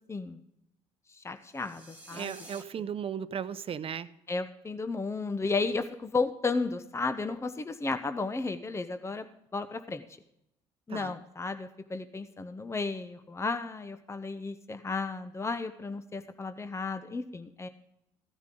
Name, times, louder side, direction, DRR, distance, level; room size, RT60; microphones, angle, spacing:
voice 1, 0.1-0.4 1.1-2.3 2.8-2.9 4.3-9.2 9.5-10.1 10.9-17.7, left 3 dB, 20° left, 9 dB, 0.9 m, -33 dB
sound 1, 1.4-2.6, right 1 dB, 15° right, 2.0 m, -50 dB
voice 2, 2.1-4.1 10.9-11.1, right 8 dB, 50° right, 13 dB, 0.8 m, -36 dB
15.0 x 9.4 x 3.8 m, 0.80 s
supercardioid pair, 70°, 12 cm